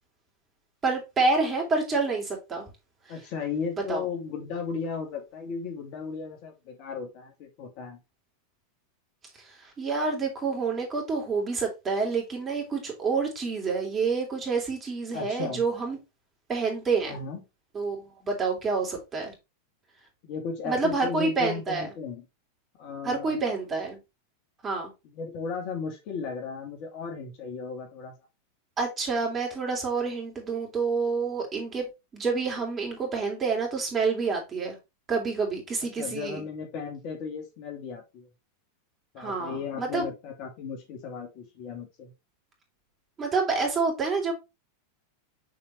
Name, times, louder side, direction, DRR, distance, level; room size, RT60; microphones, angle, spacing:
voice 1, 0.8-2.7 3.9-4.0 9.8-16.0 16.5-17.2 17.7-19.3 20.6-21.9 23.0-24.0 24.6-24.9 28.8-31.8 32.1-34.8 35.1-36.4 39.2-40.1 43.2-44.3, right 4 dB, 25° right, 3.3 m, -28 dB
voice 2, 3.1-8.0 15.1-15.6 17.0-17.4 20.2-22.2 22.8-23.4 25.1-28.1 36.0-38.3 39.1-42.1, left 5 dB, 50° left, 2.4 m, -35 dB
7.2 x 4.5 x 3.2 m
hypercardioid pair, 95°, 0 cm